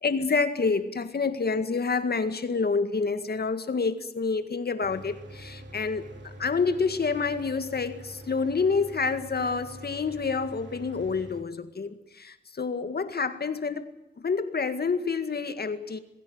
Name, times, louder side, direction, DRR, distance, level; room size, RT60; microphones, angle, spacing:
voice 1, 0.0-13.9 14.2-16.0, left 4 dB, 65° left, 1.9 m, -28 dB
Mechanical fan, 4.8-11.4, right 1 dB, 85° right, 3.5 m, -45 dB
22.0 x 16.0 x 9.6 m
wide cardioid pair, 125°, 18 cm